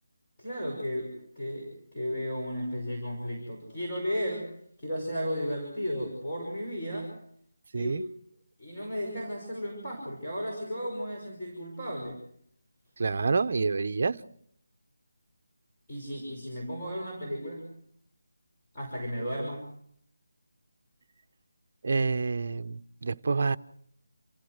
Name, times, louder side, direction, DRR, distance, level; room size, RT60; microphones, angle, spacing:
voice 1, 0.4-4.5 4.8-7.2 7.7-7.9 8.6-12.2 15.9-17.7 18.7-19.7, equal, 20° left, -4 dB, 5.6 m, -34 dB
voice 2, 7.7-8.0 13.0-14.2 21.8-23.6, right 4 dB, 40° right, 11 dB, 0.9 m, -28 dB
28.5 x 16.0 x 8.1 m, 0.69 s
figure-of-eight pair, 175°, 0 cm